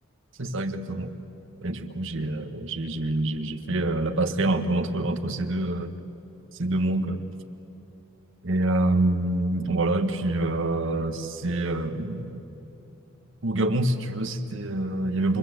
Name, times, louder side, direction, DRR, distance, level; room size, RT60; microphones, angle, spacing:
voice 1, 0.4-1.1 1.6-5.9 6.6-7.2 8.4-12.4 13.4-15.4, right 2 dB, 70° right, 6 dB, 1.6 m, -26 dB
29.0 x 25.0 x 8.1 m, 3.0 s
head